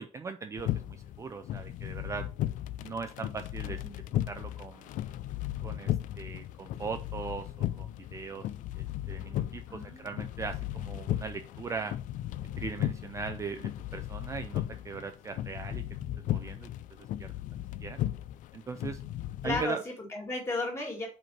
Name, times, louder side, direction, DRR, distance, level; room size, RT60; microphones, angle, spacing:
voice 1, 0.0-2.3 2.8-3.8 4.3-4.9 5.6-8.5 8.8-11.9 12.6-15.8 16.3-16.7 17.2-17.3 17.8-18.0 18.5-19.0 19.4-19.8, right 5 dB, 25° right, 8 dB, 0.4 m, -39 dB
sound 1, 0.6-19.6, left 13 dB, 75° left, 0.4 m, -36 dB
voice 2, 9.7-10.1 19.4-21.1, left 2 dB, 20° left, 0 dB, 2.4 m, -34 dB
5.2 x 4.5 x 5.7 m, 0.38 s
cardioid pair, 175°, 13 cm